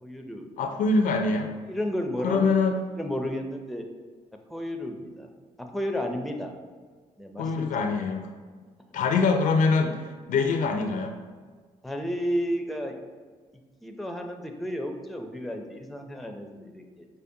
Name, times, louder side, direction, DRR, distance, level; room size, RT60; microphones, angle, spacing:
voice 1, 0.0-0.5 1.7-2.5 3.0-3.9 4.5-5.3 5.6-6.5 7.2-7.7 11.8-13.0 13.8-17.1, equal, ahead, 4 dB, 0.5 m, -32 dB
voice 2, 0.6-1.5 2.2-2.8 7.4-8.3 8.9-10.0 10.3-11.1, left 4 dB, 60° left, 5 dB, 0.4 m, -24 dB
5.0 x 2.1 x 2.6 m, 1.5 s
hypercardioid pair, 50°, 15 cm